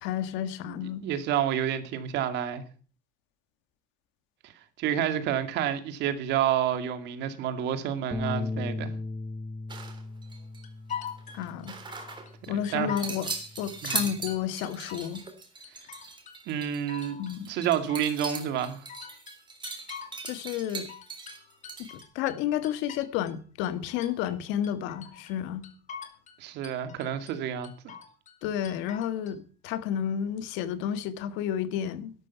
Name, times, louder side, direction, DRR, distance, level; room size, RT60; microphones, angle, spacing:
voice 1, 0.0-1.0 11.3-11.7 12.5-13.3 13.6-15.2 17.2-17.5 20.2-20.9 21.8-25.6 28.4-32.1, left 10 dB, 75° left, 1.6 m, -31 dB
voice 2, 0.7-2.6 4.4-4.5 4.8-8.9 12.7-12.9 13.8-14.1 16.5-17.2 17.5-18.8 26.4-27.7, right 10 dB, 65° right, 2.2 m, -29 dB
sound 1, 8.1-14.4, left 2 dB, 5° left, 1.3 m, -38 dB
sound 2, 9.7-10.6 10.9-12.5 13.0-22.0, right 4 dB, 25° right, 3.5 m, -39 dB
sound 3, 10.6-12.3 12.6-13.3 13.6-15.4 15.6-16.4 16.6-18.4 18.6-20.4 20.6-23.4 23.6-24.4 24.6-25.4 25.6-26.4 26.6-27.3 27.6-28.4 28.6-29.3, left 7 dB, 40° left, 2.6 m, -43 dB
12.5 x 12.0 x 5.8 m
cardioid pair, 120°, 19 cm